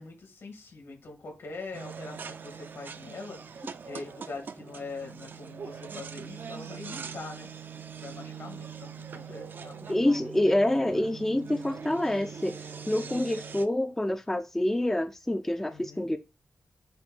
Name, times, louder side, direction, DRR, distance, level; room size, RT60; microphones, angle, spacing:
voice 1, 0.0-7.5 8.0-10.2 13.0-13.2 15.7-16.2, left 3 dB, 75° left, 2.5 m, -43 dB
sound 1, 1.7-13.6, right 6 dB, 50° right, 0.5 m, -42 dB
voice 2, 9.9-12.5 12.9-16.2, left 1 dB, 10° left, 0.4 m, -27 dB
7.6 x 2.6 x 5.4 m
wide cardioid pair, 180°, 4 cm